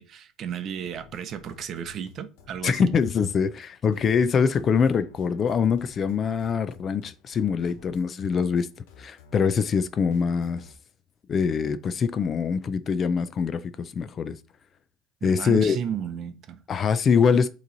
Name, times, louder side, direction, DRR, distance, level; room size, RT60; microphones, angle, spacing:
voice 1, 0.0-2.9 15.2-16.6, right 8 dB, 45° right, 0.7 m, -33 dB
sound 1, 0.8-10.7, left 4 dB, 80° left, 1.4 m, -52 dB
voice 2, 2.6-8.7 9.0-10.6 11.3-14.4 15.2-15.8 16.7-17.5, left 6 dB, 35° left, 0.5 m, -24 dB
8.3 x 3.1 x 4.0 m
supercardioid pair, 120°, 0 cm